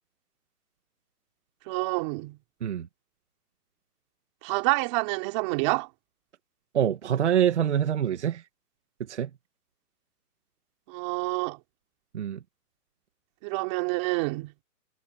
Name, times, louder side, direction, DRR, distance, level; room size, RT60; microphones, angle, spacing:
voice 1, 1.7-2.4 4.4-5.9 10.9-11.6 13.4-14.5, right 24 dB, 20° right, 3.5 m, -28 dB
voice 2, 6.7-8.4 9.1-9.3 12.1-12.4, right 9 dB, 45° right, 1.8 m, -25 dB
hypercardioid pair, 175°, 48 cm